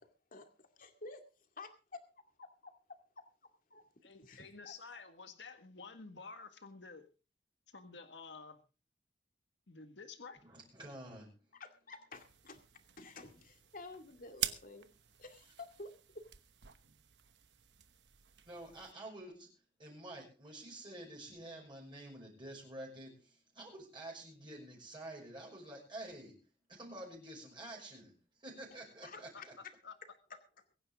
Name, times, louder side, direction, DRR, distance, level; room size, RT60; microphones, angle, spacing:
voice 1, 0.3-1.2 1.6-2.0 2.4-3.2 3.7-3.8 4.2-4.7 11.5-12.6 13.0-14.9 15.2-16.3 29.0-29.5, left 3 dB, 50° left, 6 dB, 2.2 m, -51 dB
voice 2, 4.0-7.1 7.7-8.6 9.7-10.4 29.3-29.4 29.8-30.0, left 4 dB, 80° left, 8 dB, 1.7 m, -51 dB
voice 3, 10.4-11.4 18.5-19.5 19.8-26.4 26.7-29.5, right 1 dB, 30° right, -2 dB, 6.0 m, -49 dB
sound 1, 12.1-18.9, right 12 dB, 70° right, 1.1 m, -46 dB
23.0 x 10.0 x 3.6 m, 0.33 s
head